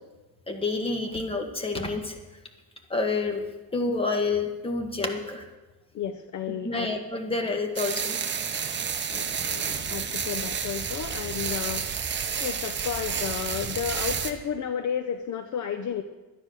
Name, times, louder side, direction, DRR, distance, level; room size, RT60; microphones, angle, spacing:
voice 1, 0.5-2.1 2.9-3.4 3.7-5.4 6.6-8.2, left 3 dB, 15° left, 4 dB, 1.6 m, -28 dB
voice 2, 5.9-6.9 9.1-11.9 12.4-16.0, left 8 dB, 45° left, 8 dB, 0.8 m, -32 dB
sound 1, 7.8-14.3, right 6 dB, 30° right, 1.0 m, -30 dB
12.5 x 9.6 x 6.5 m, 1.1 s
cardioid pair, 135°, 40 cm